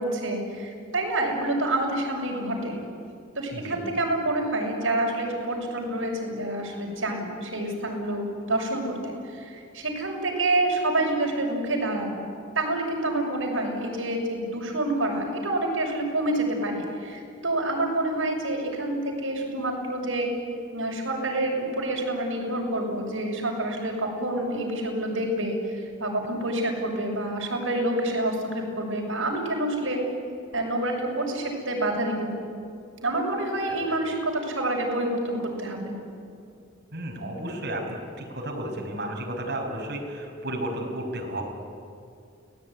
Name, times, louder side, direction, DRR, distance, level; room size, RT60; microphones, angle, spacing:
voice 1, 0.0-2.8 3.3-12.2 12.5-20.3 20.7-30.0 30.5-32.3 33.0-36.0, right 1 dB, 75° right, 0 dB, 6.6 m, -28 dB
voice 2, 36.9-41.4, right 1 dB, 50° right, 0 dB, 5.7 m, -33 dB
30.0 x 19.0 x 9.9 m, 2.4 s
head